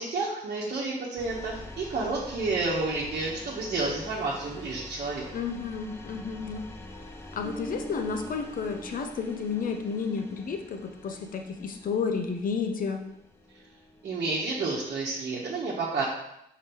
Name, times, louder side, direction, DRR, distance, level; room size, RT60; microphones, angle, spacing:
voice 1, 0.0-5.3 14.0-16.0, right 3 dB, 55° right, -6 dB, 1.2 m, -30 dB
sound 1, 1.2-15.1, left 2 dB, 15° left, 0.7 m, -46 dB
voice 2, 5.3-6.7 7.3-13.0, left 5 dB, 50° left, 5 dB, 0.8 m, -31 dB
Bass guitar, 7.4-10.9, right 3 dB, 15° right, 0.5 m, -44 dB
5.2 x 4.8 x 4.5 m, 0.79 s
cardioid pair, 130°, 19 cm